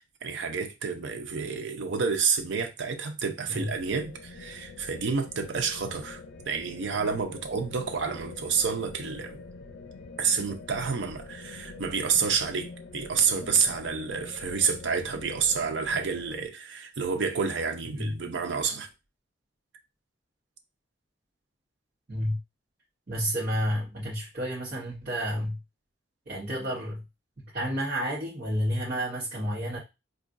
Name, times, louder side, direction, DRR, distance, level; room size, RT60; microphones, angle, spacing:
voice 1, 0.0-6.2 6.5-9.4 10.2-18.9, right 5 dB, 85° right, 0.6 m, -29 dB
sound 1, 3.6-16.5, left 3 dB, 85° left, 0.5 m, -45 dB
voice 2, 23.1-25.6 26.3-27.0 27.5-29.8, equal, 50° right, 1.0 m, -30 dB
4.5 x 2.4 x 2.5 m
head